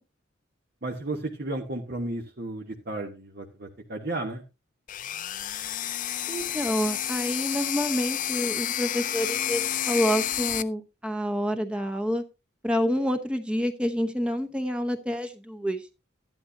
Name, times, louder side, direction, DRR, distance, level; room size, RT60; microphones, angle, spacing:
voice 1, 0.8-4.4, right 2 dB, 50° right, 1 dB, 1.1 m, -33 dB
sound 1, 4.9-10.6, left 11 dB, 40° left, 0.5 m, -30 dB
voice 2, 6.3-12.2 12.6-15.9, equal, 5° right, 7 dB, 0.9 m, -28 dB
13.0 x 11.0 x 2.7 m, 0.26 s
head